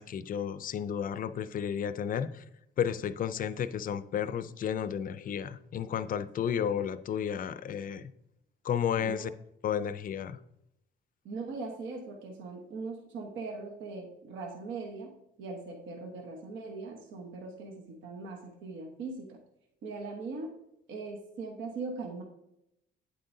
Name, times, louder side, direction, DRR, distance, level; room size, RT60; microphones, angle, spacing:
voice 1, 0.0-2.4 2.8-8.1 8.6-9.3 9.6-10.4, left 8 dB, 45° left, 13 dB, 0.5 m, -32 dB
voice 2, 11.2-19.4 19.8-20.5 20.9-22.2, right 3 dB, 80° right, 1 dB, 1.2 m, -40 dB
9.2 x 7.6 x 2.7 m, 0.83 s
cardioid pair, 100°, 19 cm